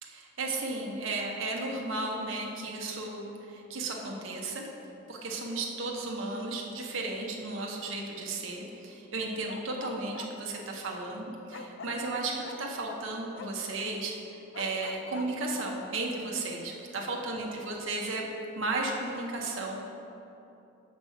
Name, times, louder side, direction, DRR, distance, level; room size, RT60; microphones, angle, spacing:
voice 1, 0.0-4.7 5.1-14.1 14.6-18.3 18.6-19.8, right 2 dB, 75° right, -1 dB, 1.0 m, -34 dB
Bark, 9.4-10.3 11.5-12.6 13.4-13.5 14.5-15.3, left 4 dB, 70° left, 0.5 m, -43 dB
6.4 x 5.1 x 6.5 m, 2.9 s
head